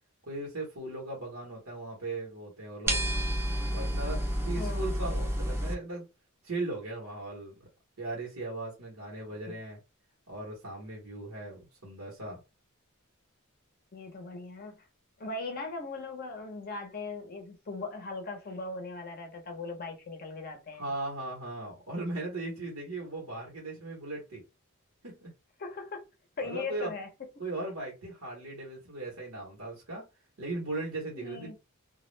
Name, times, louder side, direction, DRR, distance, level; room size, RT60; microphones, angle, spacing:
voice 1, 0.2-3.0 3.7-6.1 6.4-7.7 8.0-9.8 10.3-12.4 20.8-24.4 25.0-25.3 26.4-26.9 27.4-30.0 30.4-31.6, right 2 dB, 90° right, 1.0 m, -38 dB
sound 1, 2.9-5.7, equal, 10° right, 0.5 m, -30 dB
voice 2, 4.6-4.9 9.5-9.6 13.9-14.8 15.2-20.9 25.6-26.0 26.4-27.1 31.1-31.6, left 3 dB, 45° left, 0.6 m, -39 dB
2.2 x 2.0 x 3.1 m
head